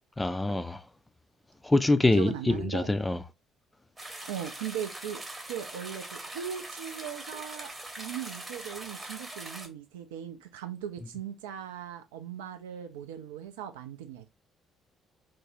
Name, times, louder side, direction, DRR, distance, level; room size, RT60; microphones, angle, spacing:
voice 1, 0.2-0.8 1.6-3.2, left 2 dB, 15° left, 0.3 m, -25 dB
voice 2, 2.1-2.9 4.3-5.2 5.5-7.7 8.0-14.3, right 9 dB, 70° right, 0.3 m, -38 dB
sound 1, 4.0-9.7, right 2 dB, 20° right, 0.8 m, -42 dB
2.5 x 2.0 x 3.1 m
figure-of-eight pair, 45°, 0 cm